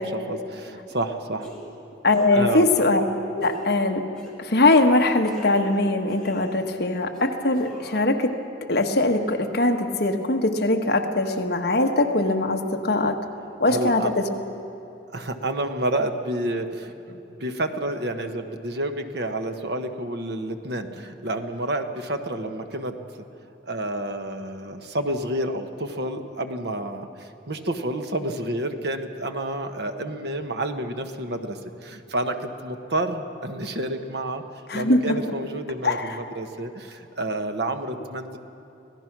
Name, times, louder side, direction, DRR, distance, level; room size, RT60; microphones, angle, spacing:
voice 1, 0.0-1.5 2.3-2.7 13.7-14.1 15.1-23.0 23.6-34.4 34.7-38.4, right 1 dB, 55° right, 7 dB, 1.2 m, -29 dB
sound 1, 0.9-1.1 1.4-1.8 2.1-2.3 2.7-3.1 3.4-3.7 4.1-4.3 4.6-5.8 6.1-6.7 7.1-8.1, equal, 5° left, 2.9 m, -43 dB
voice 2, 2.0-3.0 3.3-4.0 4.4-8.3 8.7-13.2 13.6-14.3 34.7-35.3 35.8-36.1, left 2 dB, 55° left, 4 dB, 1.3 m, -21 dB
25.5 x 17.5 x 6.0 m, 2.9 s
head